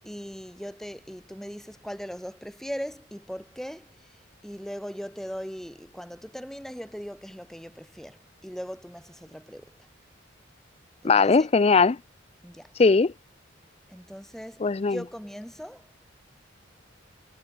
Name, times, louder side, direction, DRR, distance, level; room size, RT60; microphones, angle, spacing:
voice 1, 0.0-4.1 4.4-9.9 11.0-11.3 12.4-12.7 13.9-15.9, equal, ahead, 5.4 m, -39 dB
voice 2, 11.0-12.0 12.8-13.1 14.6-15.0, left 4 dB, 30° left, 0.4 m, -19 dB
head